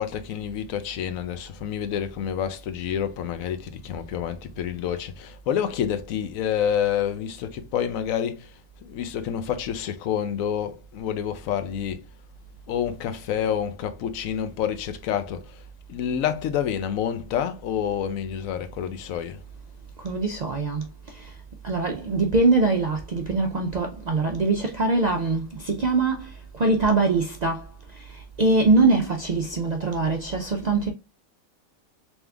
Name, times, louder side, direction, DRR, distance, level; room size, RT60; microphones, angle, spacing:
voice 1, 0.0-8.5 8.8-12.0 12.7-15.4 15.9-19.4, left 9 dB, 85° left, 1.0 m, -28 dB
voice 2, 20.0-20.8 21.6-26.3 26.6-27.6 28.4-30.9, right 3 dB, 60° right, 0.4 m, -22 dB
3.6 x 3.0 x 3.3 m
omnidirectional pair, 1.4 m